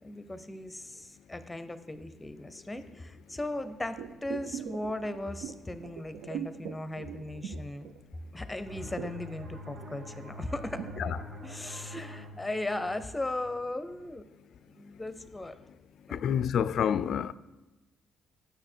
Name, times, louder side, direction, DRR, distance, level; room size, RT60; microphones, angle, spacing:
voice 1, 0.0-7.9 8.3-10.9 11.2-14.2 14.7-15.6 16.1-16.2, left 1 dB, 10° left, 0.6 m, -37 dB
sound 1, 3.9-8.4 8.6-12.2 12.5-12.6, right 9 dB, 85° right, 0.4 m, -42 dB
sound 2, 8.6-14.0, left 1 dB, 65° right, 1.5 m, -46 dB
voice 2, 16.1-17.3, left 8 dB, 65° left, 0.3 m, -28 dB
8.8 x 6.7 x 4.4 m
cardioid pair, 90°, 0 cm